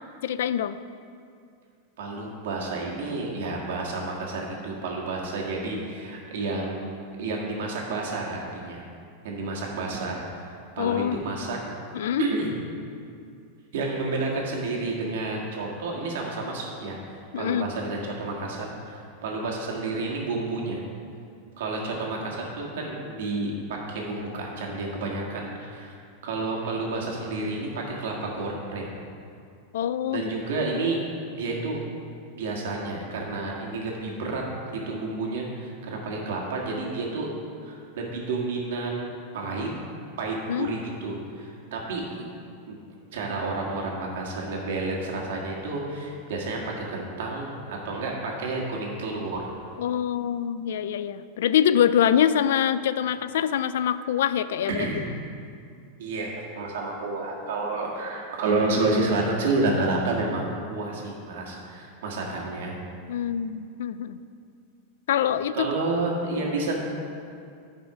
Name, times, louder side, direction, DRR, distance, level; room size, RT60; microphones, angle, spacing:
voice 1, 0.2-0.8 10.8-11.2 11.9-12.3 17.3-17.7 29.7-30.2 30.6-30.7 40.5-40.7 49.8-55.0 63.1-64.2 65.1-65.7, left 9 dB, 80° left, 14 dB, 0.3 m, -24 dB
voice 2, 2.0-6.9 7.2-8.8 9.2-11.6 12.2-12.5 13.7-20.8 21.6-25.9 26.2-29.0 30.1-31.0 31.3-31.8 32.3-34.4 34.7-37.3 37.6-39.1 39.3-39.7 40.2-42.2 42.7-42.8 43.1-49.5 54.8-55.0 56.0-62.7 65.5-66.8, right 3 dB, 75° right, -2 dB, 1.8 m, -30 dB
9.6 x 5.5 x 4.9 m, 2.4 s
supercardioid pair, 145°, 0 cm